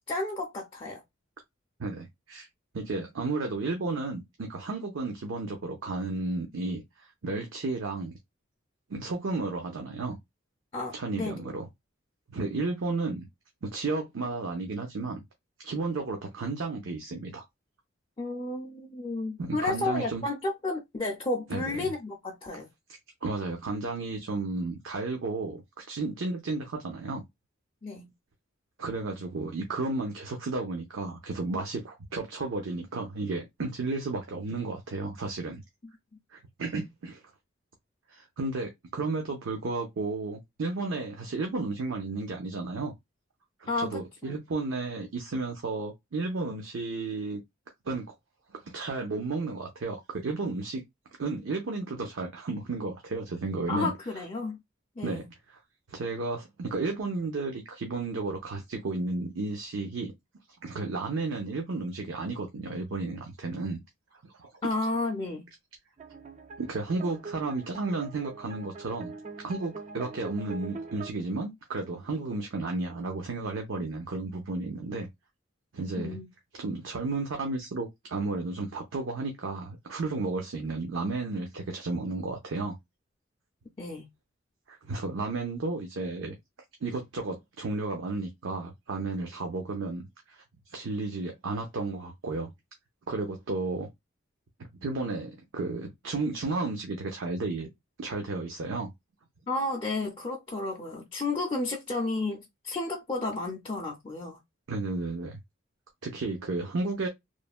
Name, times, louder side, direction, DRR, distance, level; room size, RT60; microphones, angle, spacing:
voice 1, 0.1-1.0 10.7-11.5 18.2-22.7 27.8-28.1 43.7-44.4 53.7-54.6 55.0-55.3 64.6-65.4 76.0-76.3 83.8-84.1 99.5-104.4, left 2 dB, 25° left, 0.4 m, -32 dB
voice 2, 1.8-2.5 2.7-8.2 8.9-10.2 10.9-11.7 12.3-13.2 13.6-15.2 15.6-17.4 19.4-20.2 21.5-21.9 22.9-27.2 28.8-35.6 36.3-37.2 38.1-42.9 43.6-47.4 47.9-48.1 48.5-50.8 51.2-53.9 55.0-55.6 55.9-60.1 60.6-63.8 64.2-64.5 66.6-69.1 69.4-75.1 75.7-76.2 76.5-82.8 84.7-86.4 86.8-90.4 90.7-92.5 93.1-93.9 94.8-97.7 98.0-98.9 104.7-105.4 106.0-107.1, right 3 dB, 80° right, 0.6 m, -33 dB
sound 1, 66.0-71.1, right 4 dB, 35° right, 0.3 m, -43 dB
3.1 x 2.1 x 2.4 m
head